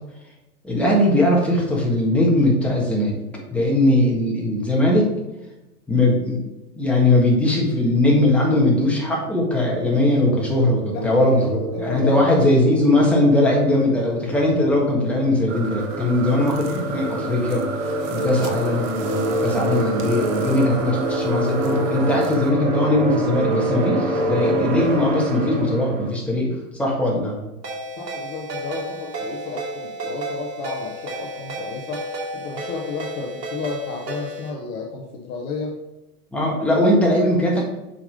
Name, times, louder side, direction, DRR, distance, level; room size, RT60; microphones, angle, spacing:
voice 1, 0.6-3.2 3.5-5.1 5.9-6.4 6.7-17.6 18.1-27.4 36.3-37.6, left 1 dB, 5° left, -3 dB, 1.5 m, -20 dB
sound 1, 9.7-26.2, right 1 dB, 55° right, 1.4 m, -27 dB
voice 2, 10.9-12.5 25.0-25.1 28.0-32.0 32.3-35.7, left 4 dB, 25° left, 1 dB, 0.7 m, -32 dB
sound 2, 15.5-22.5, right 5 dB, 25° right, 0.7 m, -36 dB
Ringtone, 27.6-34.5, right 1 dB, 90° right, 2.8 m, -32 dB
7.1 x 5.1 x 5.1 m, 1.0 s
hypercardioid pair, 135°, 47 cm